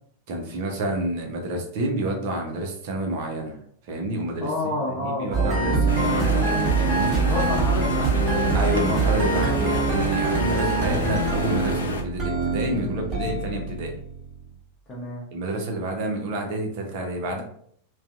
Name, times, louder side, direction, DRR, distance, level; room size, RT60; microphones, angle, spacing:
voice 1, 0.3-3.6 3.9-4.5 5.0-7.3 8.5-13.9 15.3-17.4, right 1 dB, 50° right, 2 dB, 0.6 m, -29 dB
voice 2, 4.4-6.6 6.9-8.8 10.8-11.3 14.9-15.3, left 2 dB, 25° left, -3 dB, 0.9 m, -31 dB
sound 1, 5.3-14.5, right 4 dB, 20° right, 1.0 m, -24 dB
sound 2, 5.9-12.0, left 3 dB, 65° left, 0.3 m, -31 dB
2.5 x 2.3 x 2.5 m, 0.64 s
figure-of-eight pair, 90°, 0 cm